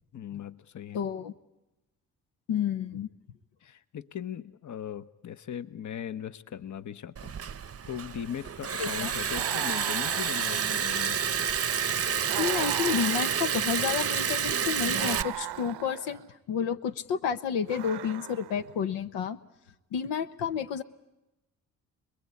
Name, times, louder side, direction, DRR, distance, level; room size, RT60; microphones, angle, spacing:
voice 1, 0.1-1.0 3.6-7.3 7.9-11.2, left 9 dB, 45° left, 13 dB, 1.0 m, -39 dB
voice 2, 0.9-1.3 2.5-3.1 8.8-9.1 12.4-19.4 19.9-20.8, left 7 dB, 80° left, 10 dB, 1.0 m, -30 dB
Liquid, 7.2-15.2, right 7 dB, 35° right, 0.8 m, -29 dB
sound 1, 9.3-11.1 12.3-13.8 14.9-16.3 17.6-18.7, right 14 dB, 75° right, 0.8 m, -39 dB
27.0 x 21.0 x 8.4 m, 0.97 s
supercardioid pair, 50°, 41 cm